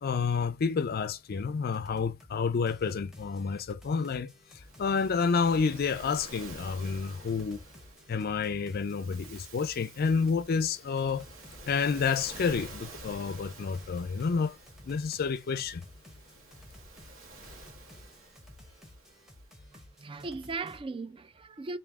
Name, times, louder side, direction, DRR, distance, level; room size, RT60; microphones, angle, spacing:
voice 1, 0.0-7.6 8.1-11.3 11.7-14.6 14.8-15.8, left 5 dB, 50° left, 0.4 m, -29 dB
sound 1, 1.7-2.4 2.7-20.8, left 1 dB, ahead, 0.9 m, -54 dB
Waves surf, 4.5-20.0, right 2 dB, 70° right, 1.6 m, -50 dB
voice 2, 19.7-21.8, right 3 dB, 25° right, 0.4 m, -38 dB
3.4 x 2.7 x 3.5 m
head